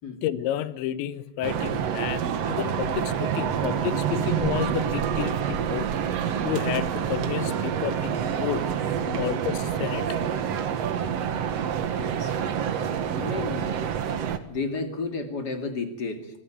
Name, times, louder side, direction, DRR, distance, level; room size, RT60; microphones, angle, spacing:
voice 1, 0.2-5.9 6.4-8.7 9.2-10.2 11.0-11.3, left 12 dB, 85° left, 3.3 m, -31 dB
sound 1, 1.4-14.4, right 8 dB, 80° right, 1.4 m, -27 dB
voice 2, 12.0-12.4 13.2-13.8 14.5-16.4, left 4 dB, 30° left, 2.0 m, -32 dB
24.5 x 17.5 x 9.1 m
omnidirectional pair, 5.1 m